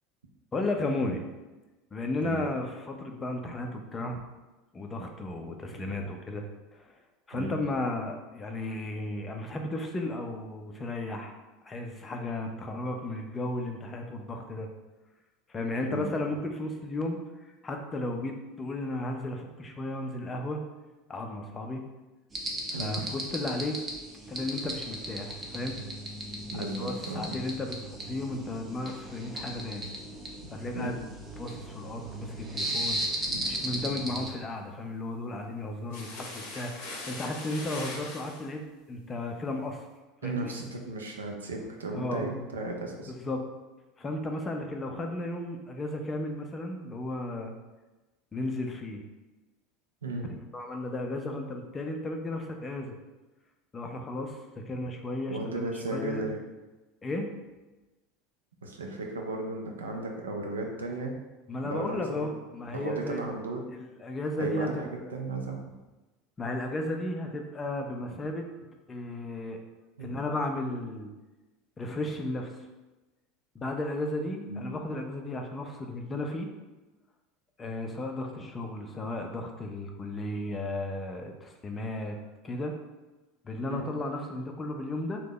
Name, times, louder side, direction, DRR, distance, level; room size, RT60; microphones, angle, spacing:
voice 1, 0.5-1.2 1.9-4.2 4.7-6.4 6.7-7.0 7.3-11.3 11.6-14.7 15.5-20.6 21.1-21.8 22.7-23.8 24.3-25.8 26.5-29.9 30.5-30.9 31.4-33.0 33.4-38.6 38.9-39.9 40.2-40.5 41.9-42.3 43.1-43.4 44.0-47.5 48.3-49.0 50.5-53.0 53.7-56.2 57.0-57.3 61.5-63.2 63.7-65.1 66.4-68.5 68.9-69.6 70.0-71.1 71.8-72.7 73.5-76.5 77.6-82.2 82.4-82.7 83.4-85.2, left 2 dB, 20° left, 3 dB, 0.4 m, -34 dB
sound 1, 22.3-34.3, right 1 dB, 20° right, 0.6 m, -36 dB
voice 2, 26.5-27.3 30.7-30.9 33.3-33.4 40.2-43.1 50.0-50.3 55.3-56.4 58.6-61.2 61.6-62.3 62.7-63.6 64.4-65.6 70.0-70.2 74.5-74.6 83.7-83.8, right 2 dB, 75° right, 1 dB, 0.4 m, -35 dB
sound 2, 35.9-38.5, left 2 dB, 60° left, 0.7 m, -41 dB
2.7 x 2.1 x 3.8 m, 1.1 s
figure-of-eight pair, 75°, 0 cm